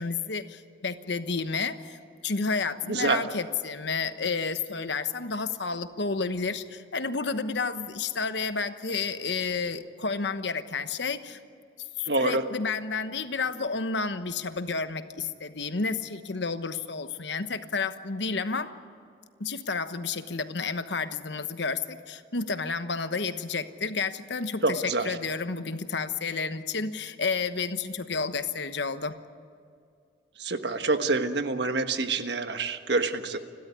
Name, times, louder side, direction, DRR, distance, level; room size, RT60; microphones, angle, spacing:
voice 1, 0.0-2.0 2.2-11.4 11.8-18.8 19.4-29.2, left 4 dB, 75° left, 10 dB, 1.1 m, -31 dB
voice 2, 2.9-3.2 12.1-12.4 24.6-25.1 30.4-33.4, right 3 dB, 70° right, 8 dB, 1.4 m, -26 dB
30.0 x 13.0 x 9.8 m, 2.3 s
head